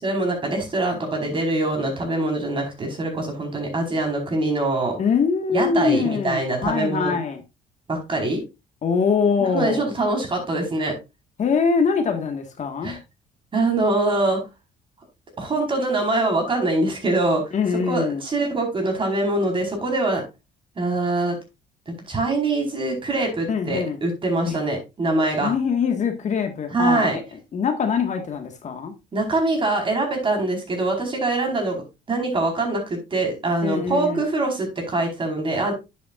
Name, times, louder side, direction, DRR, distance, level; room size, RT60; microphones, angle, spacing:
voice 1, 0.0-5.0 5.5-7.1 7.9-8.4 9.5-10.9 12.8-13.0 13.5-14.4 15.4-17.4 17.9-20.2 20.8-21.4 21.9-25.5 26.7-27.2 29.1-35.7, right 2 dB, 30° right, 2 dB, 4.5 m, -23 dB
voice 2, 5.0-7.4 8.8-9.9 11.4-13.0 17.5-18.2 23.5-24.0 24.5-24.6 25.4-27.2 27.5-28.9 33.6-34.2, left 5 dB, 45° left, 5 dB, 1.7 m, -23 dB
9.8 x 8.4 x 2.5 m, 0.25 s
cardioid pair, 110°, 17 cm